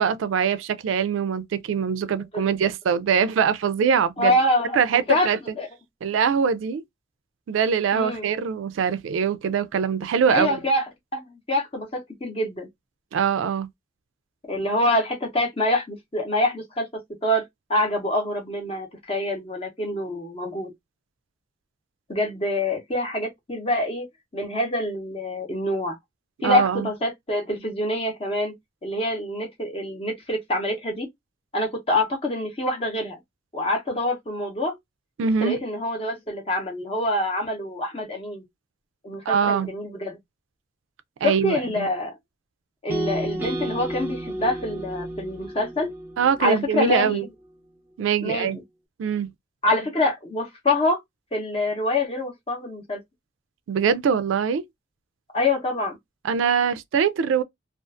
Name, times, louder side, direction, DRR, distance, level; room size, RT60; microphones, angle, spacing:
voice 1, 0.0-4.4 4.7-5.4 6.0-6.8 7.5-10.6 13.1-13.7 26.4-26.9 35.2-35.6 39.3-39.7 41.2-41.9 46.2-47.2 48.0-48.6 49.0-49.3 53.7-54.6 56.2-57.4, right 7 dB, 85° right, 0.3 m, -23 dB
voice 2, 2.1-2.7 4.2-5.3 5.6-5.7 7.9-8.3 10.3-10.8 11.1-12.7 14.5-17.4 17.7-20.7 22.1-24.1 24.3-26.0 26.4-28.5 28.8-31.1 31.5-33.1 33.5-34.7 35.2-38.4 39.0-40.2 41.2-42.1 42.8-45.9 46.4-47.3 48.2-48.6 49.6-51.0 51.3-53.0 55.3-56.0, left 1 dB, 30° left, 0.8 m, -26 dB
sound 1, 42.9-47.0, right 1 dB, 10° right, 0.5 m, -32 dB
2.4 x 2.4 x 2.3 m
head